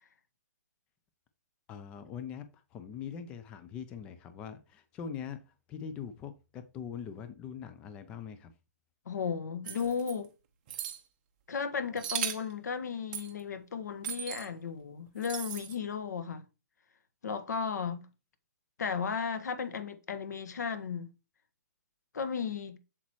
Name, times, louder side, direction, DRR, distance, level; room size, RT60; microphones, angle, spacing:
voice 1, 1.7-5.4 5.7-8.5, left 7 dB, 10° left, 0.4 m, -42 dB
voice 2, 9.0-10.3 11.5-16.4 17.2-18.0 18.8-21.1 22.1-22.8, left 6 dB, 75° left, 1.5 m, -35 dB
sound 1, 9.7-10.1 10.7-11.0 12.0-12.5 13.1-13.3 14.0-14.5 15.2-15.7, right 9 dB, 30° right, 1.0 m, -37 dB
8.1 x 7.3 x 3.1 m
hypercardioid pair, 170°, 9 cm